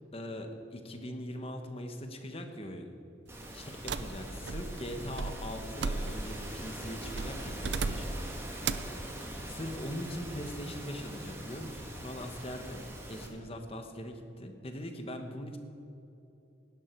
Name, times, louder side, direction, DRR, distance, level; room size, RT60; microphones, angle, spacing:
voice 1, 0.1-2.9 3.5-3.7 4.0-8.3 9.5-12.8 13.1-15.6, equal, 30° left, 6 dB, 1.3 m, -41 dB
sound 1, 3.3-13.3, right 1 dB, 15° right, 1.9 m, -43 dB
sound 2, 3.9-6.5 7.1-8.3 8.6-9.0, right 4 dB, 65° right, 0.6 m, -36 dB
18.0 x 11.0 x 4.6 m, 3.0 s
head